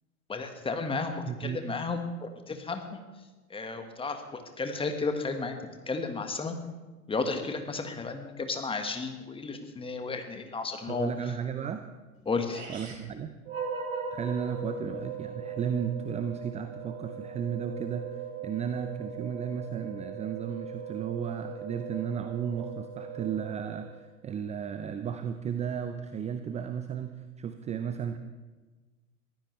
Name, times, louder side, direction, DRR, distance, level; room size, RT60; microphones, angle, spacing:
voice 1, 0.3-3.0 3.5-5.6 5.9-6.6 7.1-11.1 12.3-12.7, left 4 dB, 10° left, 6 dB, 1.6 m, -33 dB
voice 2, 1.3-1.6 10.9-11.8 12.7-13.3 14.1-28.2, right 8 dB, 15° right, 9 dB, 0.6 m, -34 dB
sound 1, 12.1-12.2 12.5-13.1, right 3 dB, 80° right, 5.7 m, -44 dB
sound 2, 13.4-24.0, right 4 dB, 55° right, 4.4 m, -39 dB
22.0 x 15.0 x 3.3 m, 1.2 s
figure-of-eight pair, 95°, 43 cm